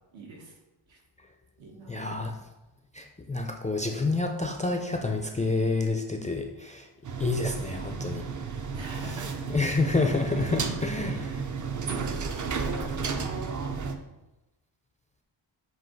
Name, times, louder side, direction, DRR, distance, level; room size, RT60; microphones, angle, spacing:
voice 1, 0.1-0.6 0.9-1.0 1.6-2.1 8.7-9.5 10.9-11.5 12.8-13.5, right 2 dB, 75° right, 0 dB, 1.5 m, -46 dB
voice 2, 1.9-2.3 2.9-6.8 7.2-8.2 9.5-11.4, left 3 dB, 20° left, 3 dB, 0.3 m, -28 dB
sound 1, 7.0-13.9, right 5 dB, 40° right, 0.5 m, -33 dB
7.7 x 2.8 x 4.4 m, 1.0 s
wide cardioid pair, 125°, 47 cm